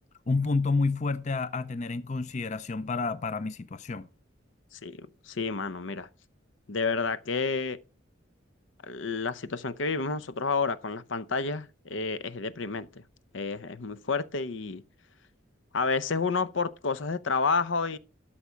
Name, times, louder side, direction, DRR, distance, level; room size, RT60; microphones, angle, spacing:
voice 1, 0.3-4.1, left 3 dB, 35° left, 0.5 m, -29 dB
voice 2, 4.7-6.1 6.7-7.8 8.8-12.9 13.3-14.8 15.7-18.0, left 4 dB, 75° left, 0.7 m, -30 dB
12.5 x 5.9 x 5.1 m
head